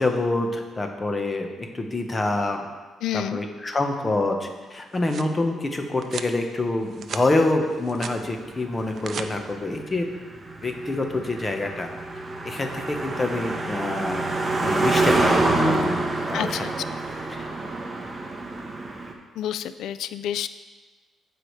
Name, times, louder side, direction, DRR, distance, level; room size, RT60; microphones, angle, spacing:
voice 1, 0.0-2.7 3.1-10.1 10.6-11.9 12.4-16.0 16.3-16.6 17.4-17.5, left 2 dB, 25° left, 4 dB, 1.1 m, -26 dB
voice 2, 3.0-3.4 16.3-16.7 19.4-20.5, left 10 dB, 80° left, 13 dB, 0.3 m, -29 dB
sound 1, 4.7-5.3 6.0-6.3 6.8-7.3 7.6-8.2 8.8-9.3, right 6 dB, 55° right, 0.5 m, -36 dB
Car passing by, 8.0-19.1, right 2 dB, 25° right, 1.0 m, -27 dB
14.5 x 5.0 x 3.2 m, 1.3 s
cardioid pair, 90°, 0 cm